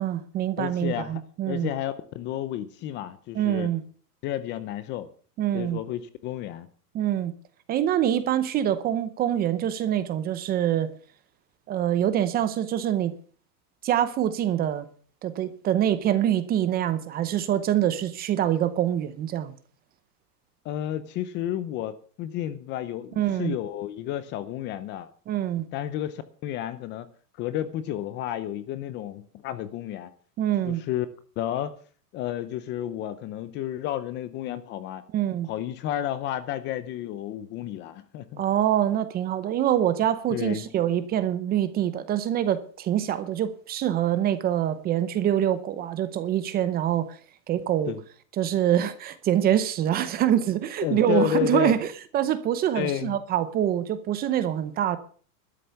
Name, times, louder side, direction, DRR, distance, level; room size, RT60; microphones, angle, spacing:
voice 1, 0.0-1.7 3.3-3.8 5.4-5.8 6.9-7.3 7.7-10.9 11.7-13.1 13.8-14.9 15.2-19.5 23.2-23.6 25.3-25.7 30.4-30.8 35.1-35.5 38.4-47.2 47.5-47.9 48.4-51.9 52.1-55.0, right 11 dB, 20° right, 0.7 m, -25 dB
voice 2, 0.6-3.7 4.2-5.1 5.5-6.7 20.6-25.1 25.7-27.1 27.4-30.1 30.7-31.1 31.4-31.8 32.1-35.0 35.5-38.4 40.3-40.7 47.9-48.0 50.8-51.8 52.7-53.2, left 12 dB, 25° left, 0.6 m, -31 dB
12.5 x 9.8 x 6.9 m
supercardioid pair, 155°, 48 cm